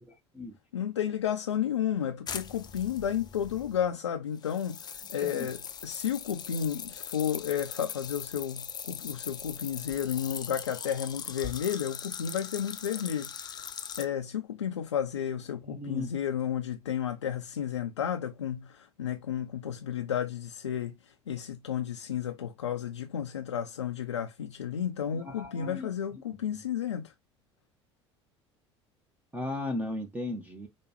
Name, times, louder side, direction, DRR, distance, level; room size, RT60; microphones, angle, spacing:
voice 1, 0.7-13.7 14.0-27.1, left 9 dB, 80° left, 0.4 m, -32 dB
sound 1, 2.3-3.9 4.4-14.1, left 7 dB, 30° left, 0.6 m, -41 dB
voice 2, 15.6-16.1 25.1-25.9 26.3-26.6 29.3-30.7, left 2 dB, 10° right, 0.9 m, -36 dB
4.8 x 2.4 x 2.9 m
figure-of-eight pair, 65°, 15 cm